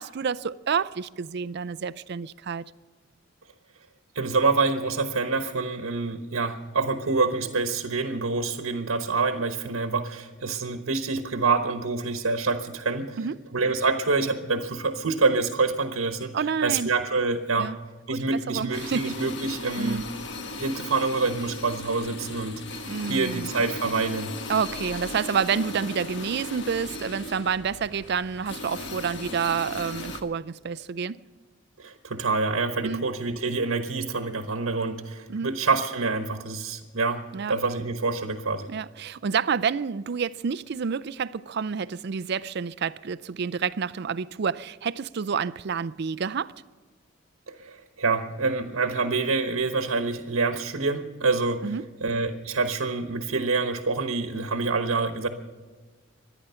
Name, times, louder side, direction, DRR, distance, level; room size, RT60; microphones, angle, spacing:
voice 1, 0.0-2.6 13.2-13.4 16.3-16.9 17.6-17.8 18.1-19.2 19.8-20.0 22.9-23.5 24.5-31.2 32.8-33.1 35.3-35.5 37.3-37.5 38.7-46.5 51.6-51.8, right 6 dB, 55° right, 0.4 m, -29 dB
voice 2, 4.1-13.2 13.5-17.7 18.1-20.1 20.6-24.4 31.8-38.7 47.5-51.7 52.0-55.3, right 3 dB, 90° right, 1.1 m, -26 dB
sound 1, 18.7-30.2, left 3 dB, 60° left, 1.3 m, -37 dB
25.0 x 10.0 x 5.6 m
head